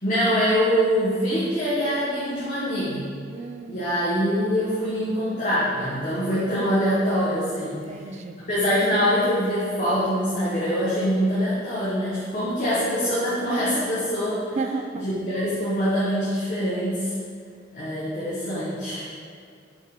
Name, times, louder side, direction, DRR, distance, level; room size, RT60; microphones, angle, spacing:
voice 1, 0.0-3.1 3.7-14.6 15.0-17.1 17.7-19.0, equal, 40° left, -9 dB, 1.1 m, -24 dB
voice 2, 3.3-3.9 7.7-8.4 14.6-15.1, right 4 dB, 35° right, 6 dB, 0.3 m, -33 dB
5.4 x 3.6 x 4.9 m, 2.3 s
head